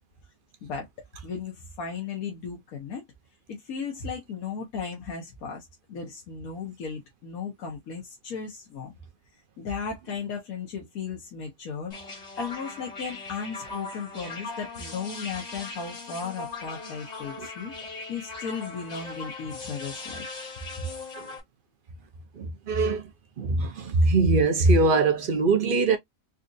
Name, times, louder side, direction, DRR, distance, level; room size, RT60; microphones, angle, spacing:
voice 1, 1.2-3.0 3.5-8.9 9.6-11.9 12.4-20.2 20.8-20.9, left 5 dB, 80° left, 1.5 m, -36 dB
sound 1, 11.9-21.4, left 3 dB, 35° left, 1.0 m, -39 dB
voice 2, 22.4-23.0 23.4-26.0, right 3 dB, 50° right, 0.7 m, -22 dB
4.2 x 2.5 x 2.6 m
omnidirectional pair, 1.5 m